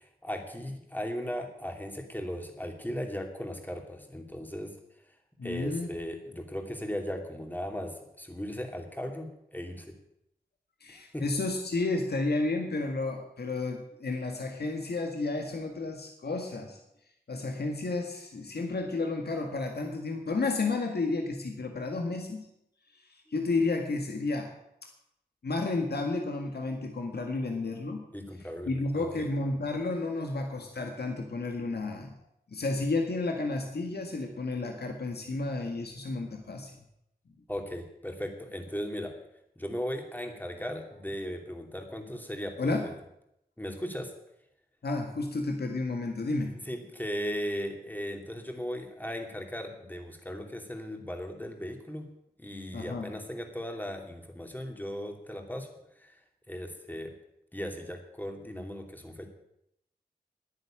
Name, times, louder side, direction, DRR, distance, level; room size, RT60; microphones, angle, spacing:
voice 1, 0.0-4.7 5.4-9.9 11.1-11.2 28.1-29.3 37.5-39.1 39.6-42.9 43.6-44.1 46.7-52.1 52.4-55.7 56.0-56.2 56.5-57.1 57.5-59.3, equal, 10° left, 4 dB, 2.8 m, -37 dB
voice 2, 5.4-5.9 10.8-16.8 17.3-22.5 22.9-24.5 25.4-28.0 28.4-32.2 32.5-36.8 42.6-42.9 44.8-46.5 52.7-53.1, left 3 dB, 80° left, 3 dB, 1.7 m, -32 dB
10.5 x 9.7 x 8.8 m, 0.79 s
cardioid pair, 55°, 17 cm